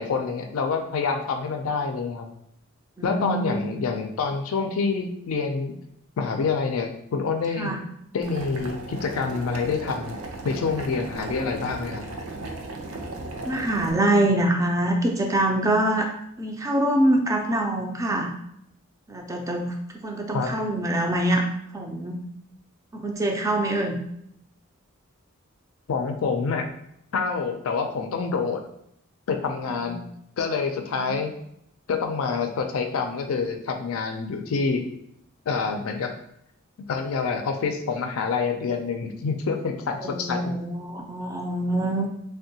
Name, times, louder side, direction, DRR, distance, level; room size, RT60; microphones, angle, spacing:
voice 1, 0.0-2.3 3.0-5.7 6.2-7.7 8.1-10.2 10.4-12.0 20.3-20.5 25.9-26.6 27.1-28.6 29.3-30.0 30.4-31.3 31.9-34.8 35.5-36.1 36.9-40.5, left 5 dB, 75° left, 5 dB, 0.4 m, -27 dB
voice 2, 3.0-3.9 7.6-7.8 13.4-16.1 16.4-18.3 19.1-19.8 20.0-21.4 21.7-22.2 22.9-24.0 29.8-29.9 30.9-31.2 40.0-42.1, right 1 dB, 15° right, 2 dB, 0.4 m, -24 dB
Boiling, 8.2-13.9, right 2 dB, 85° right, 0.5 m, -36 dB
3.5 x 2.2 x 2.7 m, 0.74 s
head